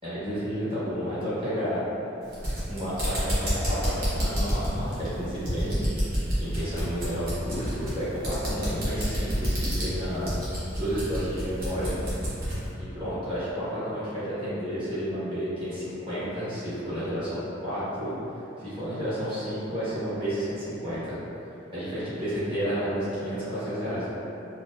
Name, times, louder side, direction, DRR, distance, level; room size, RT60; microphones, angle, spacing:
voice 1, 0.0-1.8 2.7-5.8 6.3-10.3 10.8-12.0 12.8-18.1 18.6-21.1 21.7-24.1, equal, 25° right, -13 dB, 1.1 m, -31 dB
utility knife, 2.2-12.6, equal, 50° right, 0.9 m, -29 dB
4.4 x 2.0 x 2.5 m, 3.0 s
head